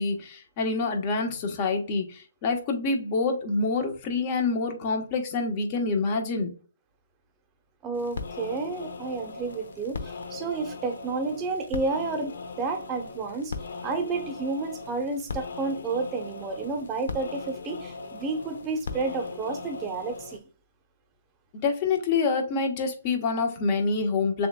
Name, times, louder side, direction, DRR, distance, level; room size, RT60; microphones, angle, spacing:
voice 1, 0.0-6.5 21.6-24.5, left 4 dB, 35° left, 1.1 m, -26 dB
voice 2, 7.8-13.5 13.8-20.4, right 3 dB, 20° right, 0.9 m, -31 dB
sound 1, 7.9-20.4, left 4 dB, 70° left, 0.8 m, -39 dB
6.7 x 2.5 x 2.2 m
hypercardioid pair, 145°, 0 cm